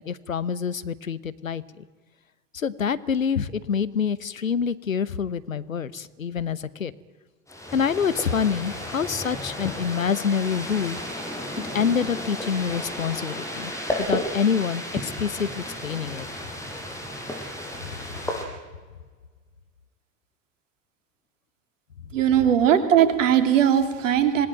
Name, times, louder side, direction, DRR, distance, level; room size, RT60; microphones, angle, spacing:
voice 1, 0.0-1.8 2.5-6.9 7.7-11.0 11.7-13.7 14.0-16.3, left 7 dB, 85° left, 16 dB, 1.0 m, -26 dB
sound 1, 7.5-18.4, left 1 dB, 5° left, 7.2 m, -33 dB
voice 2, 22.1-24.5, right 9 dB, 70° right, 9 dB, 2.7 m, -19 dB
26.5 x 19.5 x 8.9 m, 1.4 s
figure-of-eight pair, 65°, 40 cm